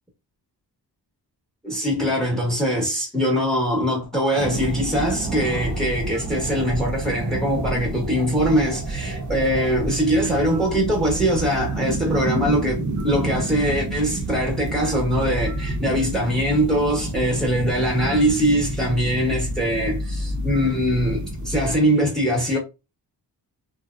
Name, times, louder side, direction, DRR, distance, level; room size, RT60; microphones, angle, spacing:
voice 1, 1.6-22.6, equal, ahead, 1.0 m, -22 dB
sound 1, 4.4-21.7, right 1 dB, 45° right, 0.7 m, -29 dB
2.9 x 2.0 x 2.4 m
cardioid pair, 80°, 41 cm